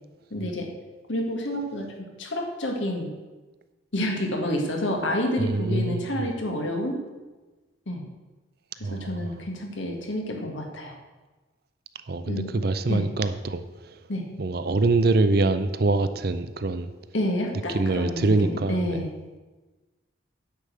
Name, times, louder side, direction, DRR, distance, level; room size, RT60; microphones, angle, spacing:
voice 1, 0.3-0.7 1.1-3.1 3.9-7.0 7.9-8.0 8.8-10.9 12.3-12.5 12.9-13.0 14.1-14.3 17.1-19.1, left 1 dB, 75° left, 1.8 m, -29 dB
voice 2, 5.4-6.2 8.8-9.3 12.1-14.0 14.4-16.9 17.7-19.0, right 3 dB, 50° right, 0.6 m, -24 dB
9.9 x 5.2 x 7.8 m
head